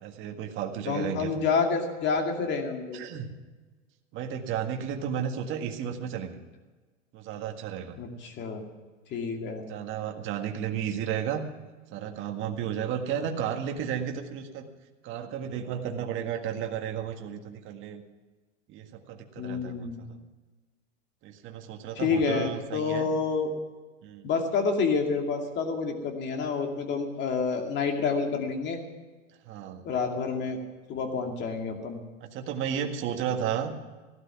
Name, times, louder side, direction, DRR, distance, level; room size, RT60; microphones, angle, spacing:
voice 1, 0.0-1.3 2.9-3.3 4.1-6.4 7.1-8.0 9.6-11.4 11.9-14.7 15.0-18.0 18.7-20.2 21.2-23.1 24.0-24.3 29.5-29.8 32.3-33.8, right 8 dB, 30° right, 3 dB, 1.7 m, -33 dB
voice 2, 0.9-3.0 8.0-8.6 9.1-9.6 19.4-20.1 21.9-23.5 24.2-28.8 29.8-30.6 30.9-32.0, left 5 dB, 30° left, 4 dB, 2.4 m, -28 dB
16.5 x 12.0 x 5.9 m, 1.3 s
supercardioid pair, 145°, 38 cm